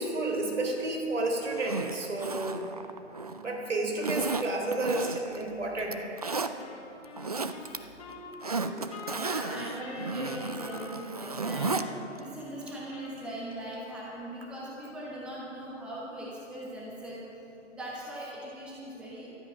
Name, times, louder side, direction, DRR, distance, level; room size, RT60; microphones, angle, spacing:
voice 1, 0.0-2.6 3.4-6.0, right 2 dB, 75° right, 1 dB, 3.6 m, -31 dB
Zipper (clothing), 1.5-3.4 4.0-5.4 5.8-6.5 7.0-7.8 8.1-11.9 12.2-12.3, right 3 dB, 35° right, 0.4 m, -34 dB
Wind instrument woodwind instrument, 6.6-14.1, left 3 dB, 25° left, 1.3 m, -46 dB
voice 2, 9.0-17.2 17.7-19.3, right 1 dB, 5° right, -6 dB, 1.2 m, -40 dB
14.5 x 13.0 x 5.7 m, 2.9 s
hypercardioid pair, 155°, 37 cm